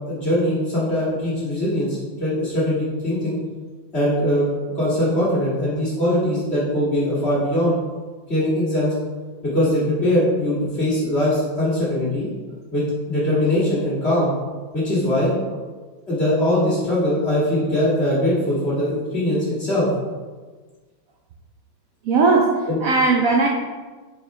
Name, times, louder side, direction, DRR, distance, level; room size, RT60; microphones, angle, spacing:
voice 1, 0.1-3.4 3.9-4.5 4.8-7.8 8.3-8.9 9.5-12.3 12.7-14.3 14.7-15.3 16.1-19.9 22.7-22.8, left 1 dB, 30° left, -9 dB, 2.2 m, -21 dB
voice 2, 22.1-23.5, right 3 dB, 75° right, 1 dB, 0.8 m, -18 dB
6.7 x 5.5 x 3.2 m, 1.4 s
omnidirectional pair, 2.2 m